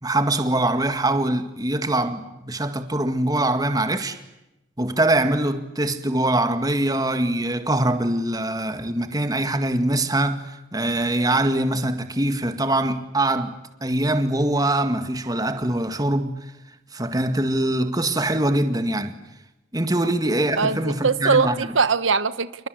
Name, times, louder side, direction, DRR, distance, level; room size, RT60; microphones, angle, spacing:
voice 1, 0.0-4.2 4.8-16.5 16.9-19.1 19.7-21.7, right 1 dB, 20° right, 2.0 m, -23 dB
voice 2, 20.6-22.7, right 4 dB, 85° right, 1.2 m, -21 dB
28.5 x 23.5 x 8.0 m
head